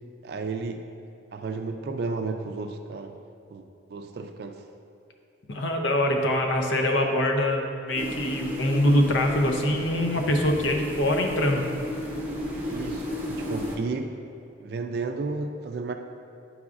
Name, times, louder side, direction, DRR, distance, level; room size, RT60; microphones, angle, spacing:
voice 1, 0.2-0.9 1.3-3.1 3.5-3.6 3.9-4.6 12.7-14.2 14.6-15.9, right 3 dB, 55° right, 6 dB, 0.3 m, -32 dB
voice 2, 5.5-11.6, left 1 dB, 75° left, 3 dB, 0.7 m, -24 dB
sound 1, 7.9-13.8, equal, 10° right, 0.7 m, -33 dB
9.5 x 4.7 x 2.5 m, 2.5 s
head